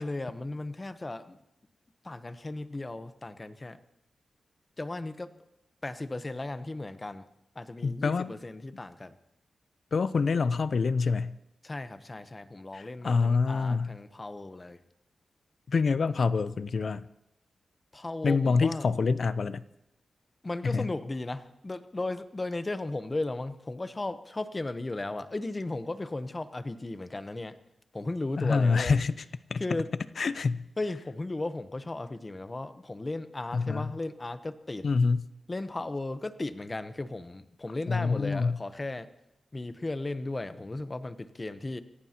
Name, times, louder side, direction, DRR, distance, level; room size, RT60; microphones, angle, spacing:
voice 1, 0.0-1.4 2.0-3.8 4.8-5.3 5.8-7.3 7.5-9.1 11.6-14.8 17.9-18.9 20.4-27.6 27.9-28.9 29.6-29.9 30.8-34.9 35.5-39.1 39.5-41.8, left 2 dB, 25° left, 12 dB, 0.9 m, -36 dB
voice 2, 7.8-8.3 9.9-11.3 12.7-14.0 15.7-17.0 18.2-19.6 20.6-20.9 28.4-29.1 29.5-29.6 30.2-30.7 33.5-33.9 34.8-35.2 37.9-38.6, left 4 dB, 60° left, 15 dB, 0.6 m, -26 dB
27.5 x 16.5 x 2.9 m, 0.88 s
wide cardioid pair, 95°, 0 cm